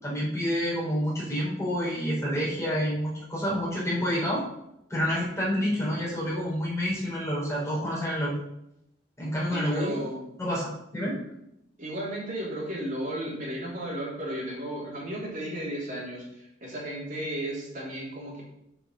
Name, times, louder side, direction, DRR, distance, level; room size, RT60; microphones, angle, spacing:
voice 1, 0.0-4.4 4.9-8.3 9.2-10.0 10.4-11.2, equal, 15° left, -6 dB, 4.2 m, -28 dB
voice 2, 9.5-10.2 10.9-11.1 11.8-18.4, right 1 dB, 45° right, -5 dB, 3.4 m, -34 dB
8.0 x 6.1 x 6.4 m, 0.81 s
head